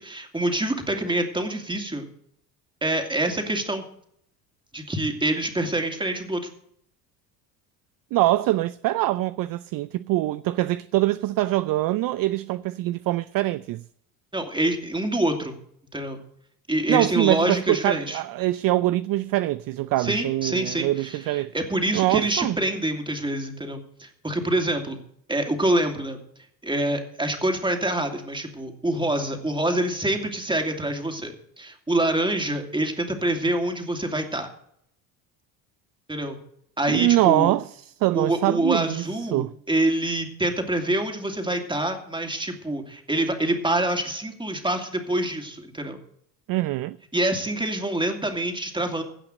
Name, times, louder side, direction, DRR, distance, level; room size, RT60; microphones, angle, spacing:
voice 1, 0.0-2.0 2.8-3.8 4.7-6.5 14.3-15.5 15.9-16.2 16.7-18.2 20.0-25.0 25.3-26.2 26.6-34.5 36.1-36.4 36.8-37.5 38.1-46.0 47.1-49.0, right 1 dB, 10° right, 2.7 m, -26 dB
voice 2, 8.1-13.8 16.9-21.5 21.9-22.6 36.9-39.0 39.3-39.5 46.5-47.0, right 16 dB, 50° right, 0.5 m, -23 dB
17.0 x 5.8 x 7.9 m
hypercardioid pair, 70°, 46 cm